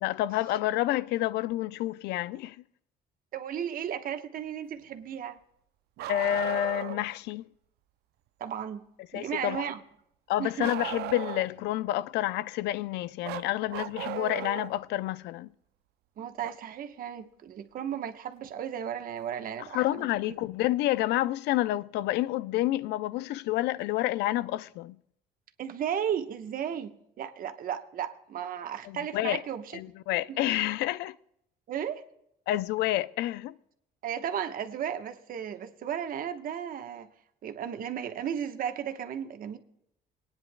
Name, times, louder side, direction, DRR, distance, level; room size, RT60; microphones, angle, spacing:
voice 1, 0.0-2.6 6.1-7.5 9.1-9.6 10.3-15.5 19.6-24.9 28.9-29.4 29.7-31.2 32.5-33.5, left 15 dB, 85° left, 0.5 m, -29 dB
voice 2, 3.3-5.4 8.4-8.8 9.1-9.8 10.4-10.7 16.2-20.1 25.6-29.6 30.3-30.4 31.7-32.0 34.0-37.1 37.4-39.6, right 9 dB, 55° right, 1.1 m, -34 dB
Bark, 6.0-7.1 10.6-11.6 13.2-14.8 16.4-16.5 18.4-18.5 19.6-19.7, right 14 dB, 75° right, 0.5 m, -36 dB
22.5 x 10.0 x 2.2 m
cardioid pair, 110°, 17 cm